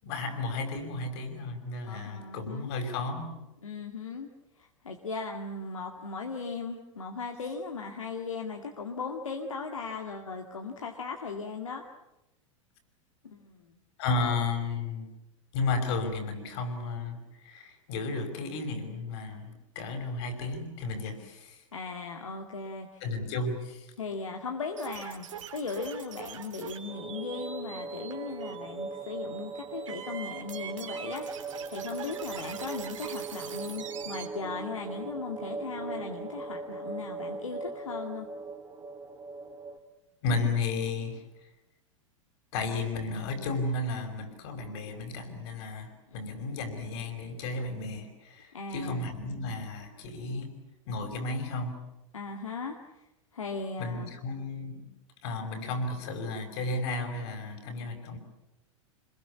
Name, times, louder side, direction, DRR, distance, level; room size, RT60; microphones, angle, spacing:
voice 1, 0.0-3.4 14.0-15.1 15.5-21.6 23.0-23.9 40.2-41.2 42.5-50.6 50.9-51.8 53.8-54.9 55.2-58.2, left 3 dB, 55° left, 7 dB, 5.6 m, -33 dB
voice 2, 1.9-2.7 3.6-4.3 4.6-11.8 13.2-13.7 21.7-23.0 24.0-25.3 25.5-38.3 46.1-46.5 48.5-49.1 52.1-52.8 53.3-54.1 57.7-58.1, left 4 dB, 80° left, 2 dB, 2.1 m, -38 dB
sound 1, 24.8-34.3, right 8 dB, 70° right, 3.3 m, -44 dB
sound 2, 26.9-39.8, right 4 dB, 20° right, 2.7 m, -39 dB
26.5 x 21.5 x 8.5 m, 0.94 s
figure-of-eight pair, 95°, 16 cm